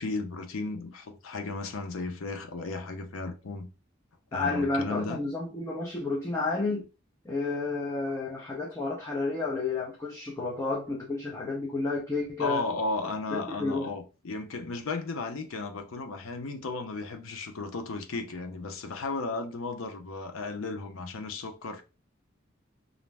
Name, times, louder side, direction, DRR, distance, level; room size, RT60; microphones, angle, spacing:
voice 1, 0.0-3.7 4.3-5.2 12.4-21.8, left 3 dB, 85° left, 0.5 m, -34 dB
voice 2, 4.3-6.9 7.2-12.6 13.3-13.9, left 3 dB, 15° left, 0.5 m, -31 dB
2.5 x 2.1 x 3.2 m
head